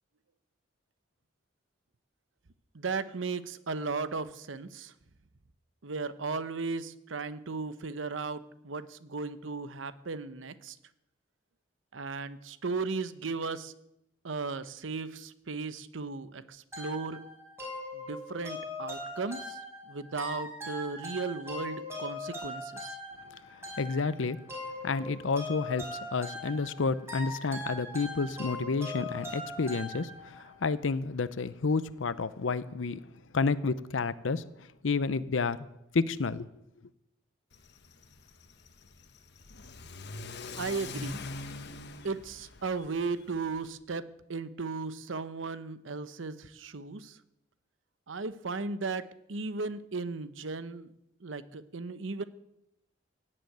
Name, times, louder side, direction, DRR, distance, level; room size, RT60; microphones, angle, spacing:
voice 1, 2.7-4.9 5.8-10.8 11.9-13.7 14.2-17.2 17.9-19.6 19.9-23.0 40.5-41.2 42.0-47.2 48.1-50.9 51.2-52.2, right 4 dB, 90° right, 0.9 m, -36 dB
sound 1, 16.7-30.5, left 1 dB, 15° right, 5.3 m, -41 dB
voice 2, 23.5-24.4 24.8-34.4 34.8-35.7 35.9-36.5, left 4 dB, 85° left, 0.7 m, -30 dB
Car / Accelerating revving vroom, 37.5-43.7, left 3 dB, 60° left, 1.2 m, -44 dB
17.0 x 7.7 x 9.2 m
head